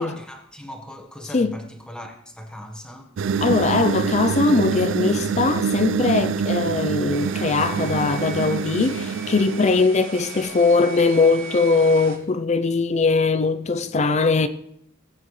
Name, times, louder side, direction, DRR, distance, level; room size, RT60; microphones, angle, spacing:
voice 1, 0.0-3.1, equal, 5° left, 1.3 m, -39 dB
sound 1, 3.2-9.8, right 6 dB, 65° right, 0.4 m, -26 dB
voice 2, 3.4-14.5, left 3 dB, 35° left, 0.5 m, -20 dB
sound 2, 7.1-12.2, right 4 dB, 85° right, 2.4 m, -38 dB
18.0 x 8.8 x 3.2 m
head